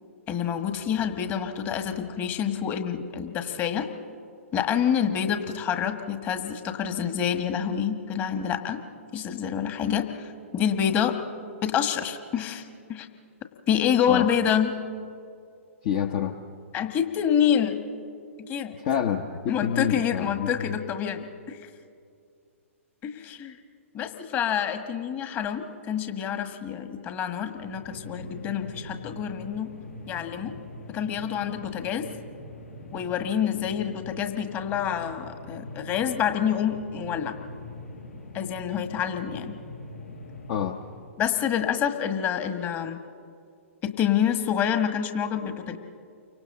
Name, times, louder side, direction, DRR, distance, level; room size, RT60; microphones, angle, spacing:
voice 1, 0.3-3.9 4.5-8.8 9.1-11.2 11.6-12.6 12.9-13.1 13.7-14.7 16.7-17.8 18.4-18.8 19.5-21.7 23.0-23.6 23.9-29.7 30.1-30.6 30.9-32.1 32.9-37.3 38.3-39.6 41.2-43.0 43.8-45.8, left 8 dB, 25° left, 7 dB, 1.6 m, -27 dB
voice 2, 15.8-16.4 18.8-20.8 40.5-40.8, left 8 dB, 40° left, 5 dB, 1.0 m, -28 dB
sound 1, 27.4-41.2, left 2 dB, 80° left, 5.2 m, -43 dB
29.5 x 24.5 x 3.9 m, 2.4 s
figure-of-eight pair, 115°, 8 cm